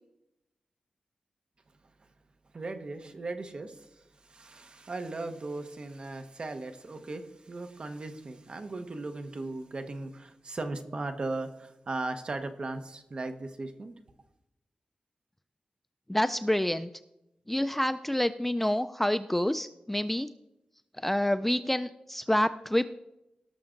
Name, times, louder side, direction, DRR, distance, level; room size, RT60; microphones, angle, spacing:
voice 1, 2.5-13.9, right 2 dB, 40° right, 7 dB, 1.0 m, -37 dB
voice 2, 16.1-16.9 17.5-20.3 21.0-22.8, left 1 dB, 5° left, 11 dB, 0.3 m, -28 dB
18.5 x 6.3 x 3.8 m, 0.87 s
wide cardioid pair, 150°, 3 cm